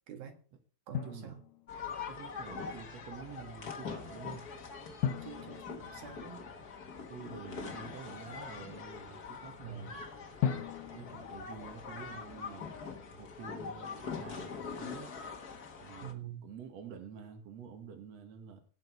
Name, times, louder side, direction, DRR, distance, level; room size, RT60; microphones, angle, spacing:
voice 1, 0.1-0.4 0.9-1.4 5.2-6.4 9.6-9.9 16.0-16.5, right 8 dB, 85° right, 4 dB, 3.5 m, -46 dB
Drum, 1.0-2.0 5.0-6.9 10.4-12.4, left 8 dB, 70° left, 2.2 m, -38 dB
voice 2, 1.0-1.3 2.1-4.5 7.1-10.0 10.5-12.7 13.2-15.1 15.8-18.6, right 6 dB, 50° right, 4 dB, 2.8 m, -49 dB
sound 1, 1.7-16.1, left 5 dB, 50° left, 1.1 m, -43 dB
18.0 x 6.6 x 4.7 m, 0.41 s
omnidirectional pair, 4.0 m